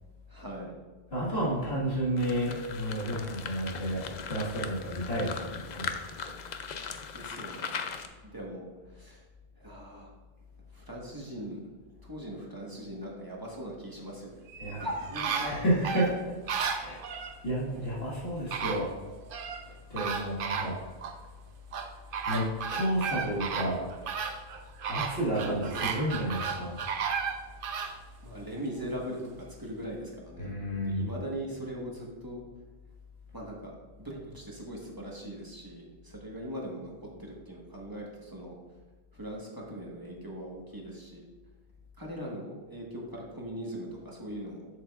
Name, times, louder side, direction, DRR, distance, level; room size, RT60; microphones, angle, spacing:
voice 1, 0.3-0.8 7.1-7.7 8.3-8.6 8.9-9.2 9.6-10.1 10.7-11.6 12.0-15.5 16.0-16.2 25.4-26.1 28.2-30.5 30.8-32.4 33.3-33.7 34.0-38.5 39.1-41.2 42.0-44.7, equal, 20° right, -3 dB, 1.3 m, -40 dB
voice 2, 1.1-6.0 14.6-14.9 15.4-16.3 16.8-17.1 17.4-18.9 19.9-20.8 22.3-23.9 24.9-26.8 30.4-31.1, equal, 70° left, -6 dB, 2.0 m, -31 dB
sound 1, 2.2-8.1, left 6 dB, 55° left, 0.6 m, -39 dB
sound 2, 14.5-17.4 18.1-18.2 18.5-19.6 20.0-21.2 21.7-28.0 28.4-28.5, right 6 dB, 60° right, 0.8 m, -34 dB
7.3 x 7.1 x 2.4 m, 1.3 s
omnidirectional pair, 1.1 m